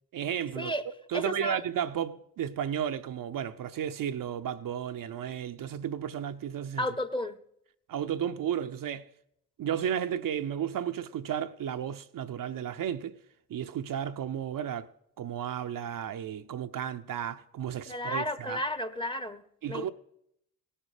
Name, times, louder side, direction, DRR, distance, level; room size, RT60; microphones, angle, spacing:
voice 1, 0.1-0.7 1.1-6.8 7.9-9.1 9.6-13.2 13.5-18.6 19.6-19.9, right 9 dB, 45° right, 0.7 m, -33 dB
voice 2, 1.1-1.6 6.8-7.4 17.9-19.4 19.7-19.9, left 1 dB, 10° left, 1.0 m, -32 dB
17.5 x 10.0 x 5.0 m
hypercardioid pair, 45°, 45 cm